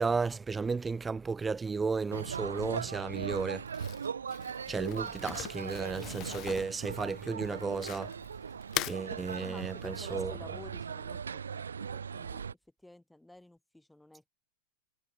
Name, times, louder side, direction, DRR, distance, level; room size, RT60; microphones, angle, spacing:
voice 1, 0.0-3.6 4.7-8.1 8.9-10.4, right 4 dB, 15° right, 1.4 m, -33 dB
sound 1, 2.1-12.5, right 6 dB, 70° right, 1.5 m, -39 dB
Crumpling crinkling, 3.7-8.3 8.6-9.0, left 17 dB, 35° left, 4.3 m, -40 dB
voice 2, 9.4-12.6 12.8-14.3, left 1 dB, 5° left, 5.2 m, -53 dB
figure-of-eight pair, 90°, 0 cm